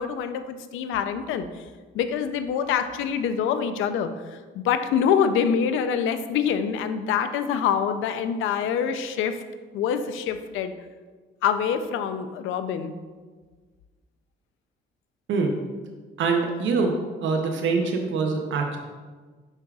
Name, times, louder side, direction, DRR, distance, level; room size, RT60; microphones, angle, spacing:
voice 1, 0.0-1.5 1.9-9.4 9.7-10.7 11.4-12.9, left 7 dB, 90° left, 10 dB, 0.5 m, -25 dB
voice 2, 16.2-16.9 17.2-18.8, right 4 dB, 70° right, 3 dB, 0.7 m, -24 dB
6.5 x 6.0 x 2.4 m, 1.4 s
cardioid pair, 90°, 20 cm